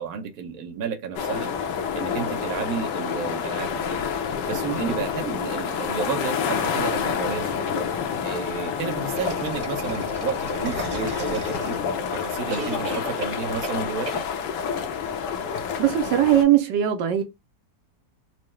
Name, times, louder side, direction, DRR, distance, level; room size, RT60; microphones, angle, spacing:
voice 1, 0.0-1.5 1.9-4.1 4.5-7.9 8.2-11.8 12.1-14.2, right 6 dB, 65° right, 1.3 m, -31 dB
sound 1, 1.2-16.4, left 7 dB, 80° left, 1.3 m, -28 dB
sound 2, 9.1-12.0 12.5-13.8 14.1-14.2, right 2 dB, 40° right, 1.4 m, -34 dB
voice 2, 15.8-17.2, right 11 dB, 85° right, 1.3 m, -19 dB
4.7 x 2.0 x 3.1 m
omnidirectional pair, 1.9 m